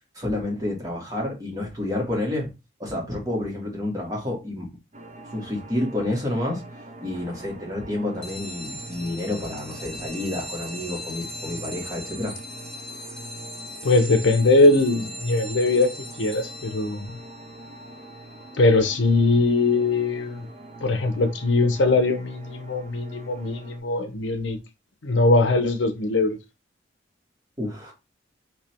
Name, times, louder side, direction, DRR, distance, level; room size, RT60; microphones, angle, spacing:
voice 1, 0.2-2.5 2.8-4.7 5.3-6.6 7.0-12.4 27.6-27.9, left 1 dB, 20° right, 1.6 m, -29 dB
sound 1, 4.9-23.8, right 2 dB, 40° right, 0.8 m, -44 dB
sound 2, 8.2-20.3, equal, 5° left, 1.3 m, -40 dB
voice 2, 13.8-17.1 18.6-20.5 20.8-24.6 25.0-26.4, left 2 dB, 80° left, 0.7 m, -21 dB
3.3 x 2.9 x 4.3 m
head